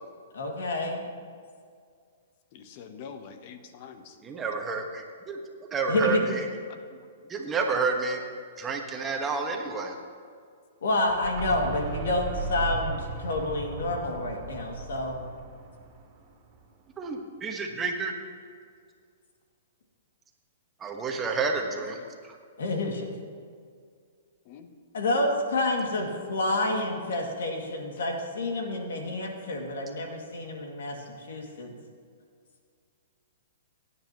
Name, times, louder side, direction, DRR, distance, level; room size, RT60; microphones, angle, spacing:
voice 1, 0.3-1.1 5.9-6.2 10.8-15.2 22.6-23.1 24.9-31.7, left 2 dB, 80° left, 2 dB, 2.2 m, -29 dB
voice 2, 2.5-4.2 6.7-7.0 21.8-22.2 24.4-24.7, left 6 dB, 45° left, 8 dB, 0.9 m, -46 dB
voice 3, 4.2-5.4 5.7-6.4 7.3-8.2 8.6-9.9 17.0-18.1 20.8-22.0, right 4 dB, 15° right, 2 dB, 1.4 m, -29 dB
sound 1, 11.0-16.8, right 3 dB, 35° right, 2.4 m, -37 dB
16.5 x 9.6 x 3.0 m, 2.1 s
hypercardioid pair, 140°, 0 cm